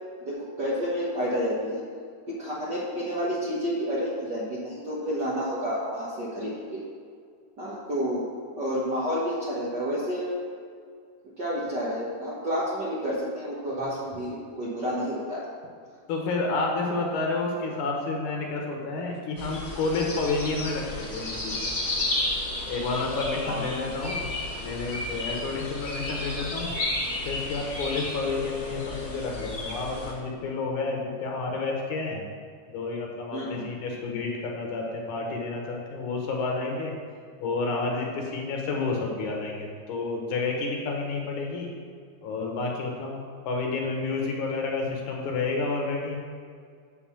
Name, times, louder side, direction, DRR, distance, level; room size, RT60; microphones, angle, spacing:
voice 1, 0.2-1.8 2.3-6.8 7.6-8.3 8.5-10.3 11.4-15.4 23.5-23.6 33.3-33.7, equal, 65° right, -7 dB, 1.0 m, -30 dB
voice 2, 16.1-21.7 22.7-24.3 24.6-26.7 27.3-32.2 32.7-36.9 37.4-41.7 42.2-43.2 43.5-46.2, left 3 dB, 70° left, 0 dB, 2.3 m, -30 dB
sound 1, 19.4-30.1, left 1 dB, 35° left, 1.1 m, -32 dB
8.7 x 4.0 x 7.2 m, 2.1 s
omnidirectional pair, 3.8 m